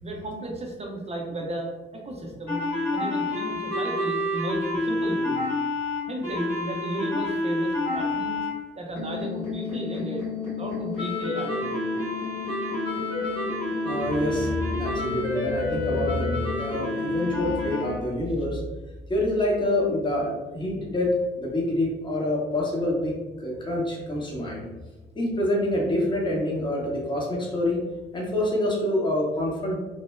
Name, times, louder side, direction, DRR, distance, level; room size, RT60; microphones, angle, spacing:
voice 1, 0.0-2.7 2.9-5.4 6.1-8.5 8.8-11.8, right 1 dB, 20° right, 0 dB, 0.6 m, -34 dB
sound 1, 2.5-8.5 9.0-18.0, left 2 dB, 90° left, 1.3 m, -28 dB
voice 2, 13.8-18.6 19.1-24.7 25.1-27.8 28.1-29.8, left 1 dB, 15° left, -3 dB, 0.7 m, -26 dB
3.0 x 2.0 x 2.3 m, 1.2 s
figure-of-eight pair, 45°, 29 cm